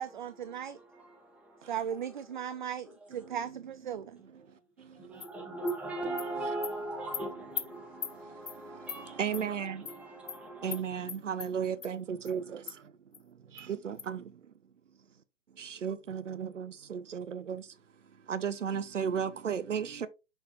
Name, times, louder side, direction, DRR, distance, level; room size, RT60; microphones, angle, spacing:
voice 1, 0.0-0.8 1.7-4.2, right 9 dB, 40° right, 0.4 m, -37 dB
voice 2, 0.5-2.0 2.3-2.4 4.9-10.8, right 2 dB, 5° right, 1.2 m, -40 dB
Animal, 5.2-5.3 5.7-5.8 6.2-6.3 6.6-6.7 7.1-7.2 7.6-7.7 8.0-8.1 8.5-8.6 8.9-9.0 9.3-9.4 9.8-10.0 10.3-10.4 10.7-10.8 11.1-11.5 11.8-11.9 12.2-12.3 12.7-12.8 13.1-13.2 13.6-13.7 14.0-14.1, left 7 dB, 60° left, 0.9 m, -38 dB
voice 3, 9.2-9.8 10.6-12.4 13.8-14.2 15.8-17.6 18.3-20.1, right 7 dB, 70° right, 0.7 m, -33 dB
6.2 x 5.5 x 3.0 m
figure-of-eight pair, 125°, 38 cm